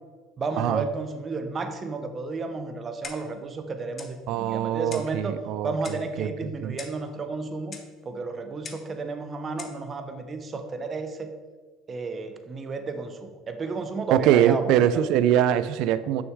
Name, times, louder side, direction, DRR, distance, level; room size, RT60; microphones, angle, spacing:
voice 1, 0.4-5.4 5.6-7.8 8.0-11.3 11.9-14.6 14.9-15.0, right 3 dB, 30° right, 8 dB, 0.7 m, -32 dB
Clock, 3.0-3.4 4.0-4.2 4.9-5.2 5.8-6.1 6.8-7.1 7.7-7.9 8.6-8.9 9.6-9.8, left 5 dB, 35° left, 0.7 m, -41 dB
voice 2, 4.3-6.8 14.1-16.2, right 11 dB, 70° right, 15 dB, 0.3 m, -23 dB
6.2 x 6.1 x 3.6 m, 1.5 s
supercardioid pair, 100°, 0 cm